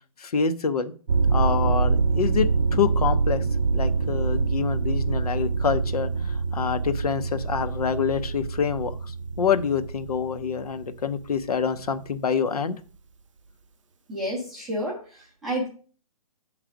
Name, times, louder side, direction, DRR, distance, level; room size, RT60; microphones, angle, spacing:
voice 1, 0.2-0.9 1.3-3.4 3.7-6.1 6.5-9.0 9.4-12.8, left 7 dB, 85° left, 11 dB, 0.8 m, -26 dB
sound 1, 1.1-11.9, right 4 dB, 55° right, 0.4 m, -25 dB
voice 2, 14.1-15.7, equal, ahead, -8 dB, 0.5 m, -30 dB
8.7 x 3.2 x 5.0 m, 0.40 s
hypercardioid pair, 180°, 19 cm